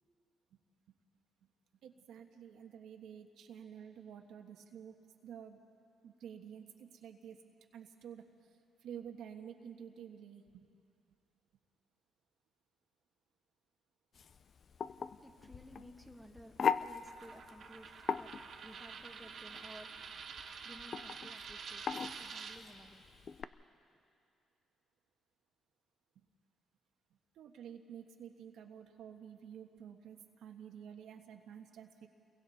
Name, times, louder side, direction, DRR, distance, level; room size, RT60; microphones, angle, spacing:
voice 1, 1.8-4.9 5.2-5.6 6.0-7.4 7.7-8.2 8.8-10.7 26.2-26.3 27.3-32.1, right 8 dB, 80° right, 1.4 m, -50 dB
sound 1, 14.1-23.4, left 6 dB, 50° left, 0.5 m, -40 dB
voice 2, 14.8-24.0, equal, ahead, 1.6 m, -57 dB
Coin (dropping), 17.1-22.6, right 6 dB, 60° right, 1.8 m, -48 dB
29.0 x 22.5 x 4.2 m
cardioid pair, 90°, 0 cm